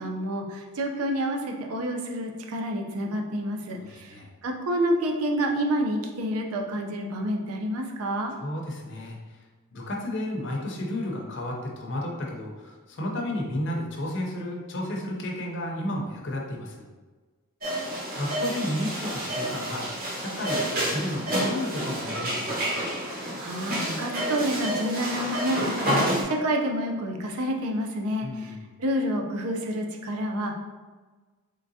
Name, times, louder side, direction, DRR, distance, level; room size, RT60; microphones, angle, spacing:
voice 1, 0.0-4.1 4.4-8.3 23.4-30.6, equal, 85° right, 2 dB, 0.5 m, -29 dB
voice 2, 3.8-4.3 8.4-9.2 9.7-16.9 18.2-19.9 20.2-22.8 28.2-28.6, left 1 dB, 55° left, 0 dB, 0.6 m, -32 dB
sound 1, 17.6-26.2, right 1 dB, 40° right, 0.9 m, -29 dB
3.7 x 3.3 x 2.7 m, 1.3 s
head